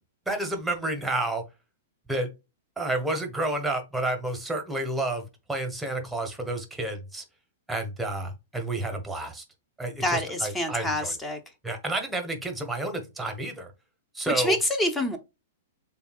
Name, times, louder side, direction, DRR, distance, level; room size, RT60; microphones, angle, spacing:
voice 1, 0.3-1.4 2.1-2.3 2.8-7.2 7.7-9.4 9.8-11.1 11.6-13.7 14.1-14.6, right 2 dB, 5° right, 1.1 m, -30 dB
voice 2, 10.0-11.4 14.3-15.2, left 1 dB, 10° left, 0.8 m, -26 dB
6.8 x 2.3 x 2.4 m
figure-of-eight pair, 105°, 0 cm